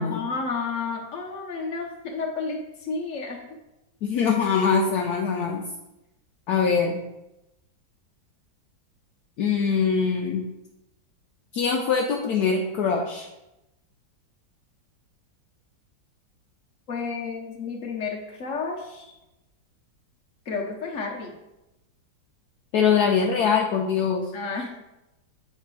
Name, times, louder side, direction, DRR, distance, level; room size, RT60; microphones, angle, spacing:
voice 1, 0.0-3.4 16.9-19.1 20.5-21.3 24.3-24.7, left 4 dB, 50° left, 0 dB, 1.1 m, -31 dB
voice 2, 4.0-5.7 6.5-7.0 9.4-10.4 11.5-13.2 22.7-24.3, left 6 dB, 70° left, 1 dB, 1.0 m, -23 dB
8.3 x 3.3 x 4.7 m, 0.94 s
omnidirectional pair, 2.0 m